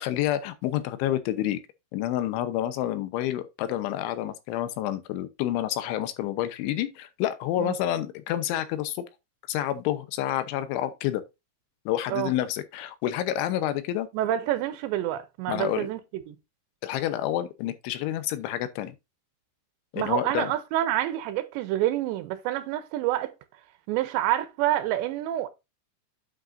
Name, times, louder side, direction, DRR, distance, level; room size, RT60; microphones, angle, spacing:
voice 1, 0.0-1.6 1.9-9.0 9.5-11.2 11.9-14.1 15.5-15.9 16.8-18.9 19.9-20.5, left 12 dB, 90° left, 3.3 m, -29 dB
voice 2, 14.1-16.4 20.0-23.3 23.9-25.5, right 13 dB, 85° right, 2.8 m, -27 dB
8.8 x 7.6 x 2.6 m
omnidirectional pair, 5.4 m